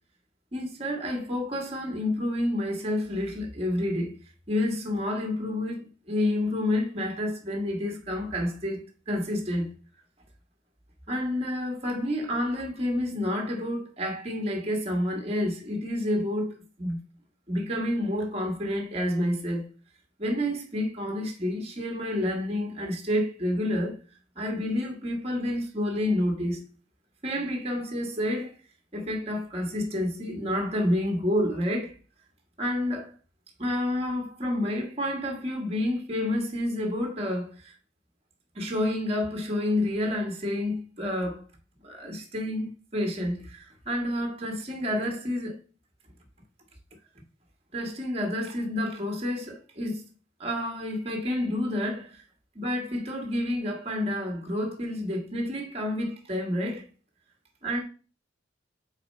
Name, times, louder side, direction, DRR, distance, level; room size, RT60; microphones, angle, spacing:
voice 1, 0.5-4.2 4.5-9.7 11.1-17.0 17.5-19.7 20.2-24.0 24.4-26.6 27.2-28.5 28.9-31.9 32.6-33.1 33.6-37.7 38.5-41.5 41.8-45.6 47.7-50.0 50.4-52.2 52.5-56.8 57.6-57.8, left 1 dB, 35° right, 1.3 m, -29 dB
4.3 x 4.2 x 5.2 m
head